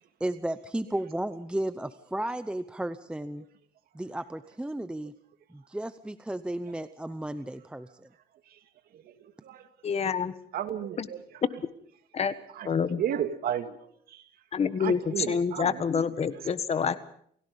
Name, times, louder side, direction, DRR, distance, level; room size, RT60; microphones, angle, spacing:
voice 1, 0.2-3.4 3.9-5.1 5.5-8.1, right 1 dB, 5° right, 12 dB, 0.7 m, -34 dB
voice 2, 8.9-9.7 10.5-11.2 12.5-12.7 13.0-14.3 14.8-16.0 16.4-16.5, right 10 dB, 65° right, 8 dB, 2.3 m, -34 dB
voice 3, 9.8-10.3 11.0-11.1 12.1-12.3 12.6-13.0 14.5-17.0, left 6 dB, 40° left, 13 dB, 1.5 m, -27 dB
29.5 x 16.5 x 5.4 m, 0.62 s
cardioid pair, 110°, 17 cm